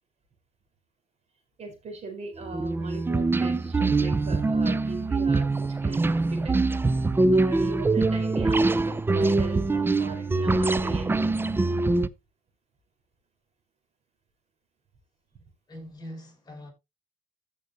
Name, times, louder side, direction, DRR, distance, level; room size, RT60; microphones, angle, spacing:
voice 1, 1.6-6.8 7.3-11.4 15.3-15.4, right 3 dB, 40° right, 4.3 m, -40 dB
sound 1, 2.4-12.1, right 3 dB, 15° right, 0.5 m, -24 dB
voice 2, 15.7-16.7, left 1 dB, 25° left, 6.4 m, -42 dB
14.5 x 6.8 x 2.8 m
cardioid pair, 110°, 17 cm